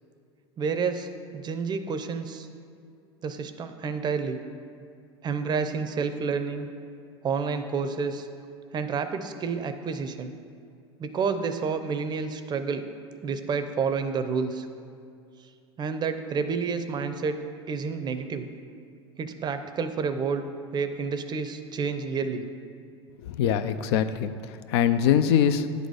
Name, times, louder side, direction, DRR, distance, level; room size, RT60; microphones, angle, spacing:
voice 1, 0.6-2.5 3.2-4.4 5.2-6.7 7.2-8.3 8.7-10.3 11.0-12.9 13.2-14.7 15.8-17.4 17.7-18.5 19.2-20.5 20.7-22.5, right 5 dB, 30° right, 9 dB, 0.5 m, -29 dB
voice 2, 23.2-24.3 24.7-25.6, left 9 dB, 65° left, 11 dB, 0.5 m, -22 dB
9.2 x 4.1 x 4.8 m, 2.4 s
hypercardioid pair, 90°, 14 cm